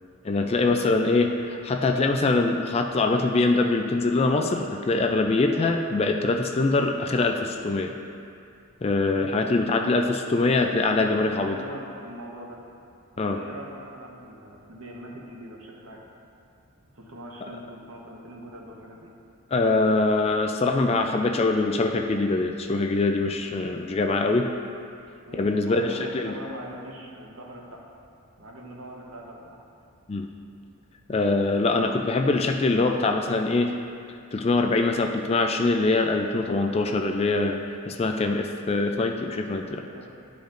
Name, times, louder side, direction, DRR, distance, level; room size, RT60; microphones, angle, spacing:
voice 1, 0.2-7.9 8.8-11.5 13.2-13.4 19.5-24.5 25.3-26.3 30.1-30.3 31.1-33.7 34.3-37.6 37.9-39.8, left 3 dB, 25° left, 4 dB, 0.3 m, -23 dB
voice 2, 10.7-12.6 13.1-16.0 16.9-19.1 25.3-27.9 28.4-29.6 39.6-40.1, right 1 dB, 70° right, -2 dB, 1.1 m, -42 dB
12.0 x 5.0 x 2.5 m, 2.4 s
head